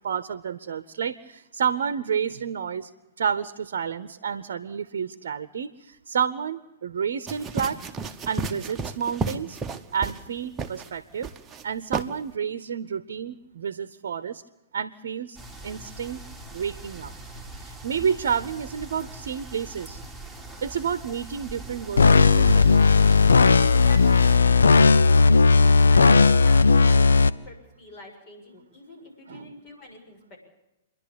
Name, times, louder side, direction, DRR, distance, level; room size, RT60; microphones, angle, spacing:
voice 1, 0.0-2.9 3.2-7.8 8.3-9.6 9.9-11.3 11.6-14.4 14.7-15.4 15.6-16.2 16.5-17.1 17.6-20.0 20.6-22.7 29.3-29.5, right 7 dB, 65° right, 15 dB, 0.9 m, -30 dB
sound 1, 7.3-10.3 10.6-10.9 11.2-11.6 11.9-12.1, right 4 dB, 20° right, 1.1 m, -32 dB
sound 2, 15.3-24.4, right 3 dB, 5° left, 3.2 m, -41 dB
sound 3, 22.0-27.3, left 4 dB, 80° left, 0.6 m, -16 dB
voice 2, 23.8-30.4, left 1 dB, 40° left, 2 dB, 7.3 m, -45 dB
27.5 x 11.5 x 8.7 m, 0.95 s
figure-of-eight pair, 115°, 0 cm